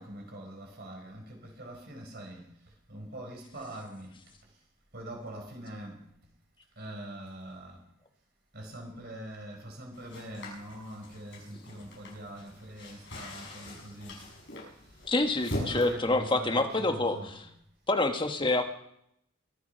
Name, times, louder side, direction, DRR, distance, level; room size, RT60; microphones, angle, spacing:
voice 1, 0.0-4.6 4.9-6.1 6.8-7.9 8.5-14.2 14.6-15.1 15.6-17.5, right 1 dB, 50° right, 4.6 m, -44 dB
sound 1, 9.9-15.9, left 1 dB, 55° left, 6.2 m, -42 dB
voice 2, 15.1-17.2 17.9-18.6, left 2 dB, 25° left, 1.2 m, -27 dB
23.5 x 8.5 x 5.5 m
head